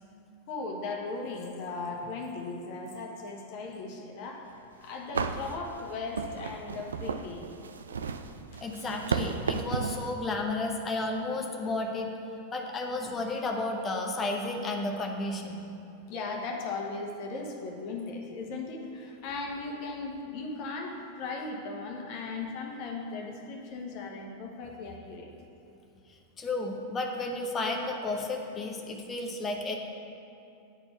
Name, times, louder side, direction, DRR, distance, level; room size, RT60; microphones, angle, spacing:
voice 1, 0.5-7.5 8.5-8.6 8.9-9.2 16.1-25.3, left 3 dB, 45° left, 1 dB, 1.2 m, -37 dB
sound 1, 4.6-4.7 5.1-10.1, right 5 dB, 70° right, 0.4 m, -34 dB
voice 2, 8.6-12.1 12.5-15.7 26.1-29.8, left 2 dB, 20° left, 2 dB, 0.9 m, -32 dB
9.0 x 4.4 x 6.7 m, 2.7 s
figure-of-eight pair, 90°, 0 cm